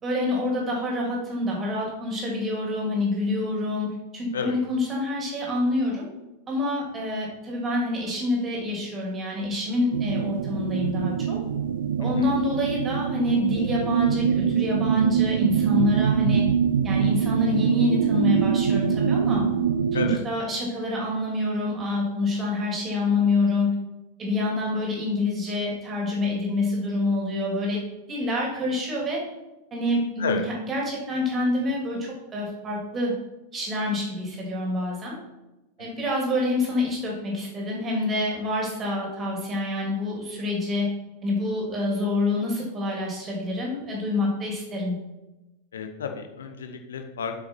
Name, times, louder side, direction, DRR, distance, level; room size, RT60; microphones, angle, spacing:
voice 1, 0.0-6.1 6.5-11.4 12.0-16.5 16.8-19.4 20.0-23.8 24.2-27.8 28.1-29.2 29.7-30.4 30.6-33.1 33.5-35.2 35.8-40.9 41.2-45.0, left 2 dB, 25° right, -2 dB, 2.7 m, -27 dB
sound 1, 9.9-20.2, right 7 dB, 65° right, 0.5 m, -23 dB
voice 2, 12.0-12.3 19.9-20.2 30.2-30.4 35.8-35.9 45.7-47.3, left 7 dB, 65° left, 5 dB, 0.9 m, -31 dB
7.9 x 5.6 x 4.5 m, 1.0 s
figure-of-eight pair, 90°, 0 cm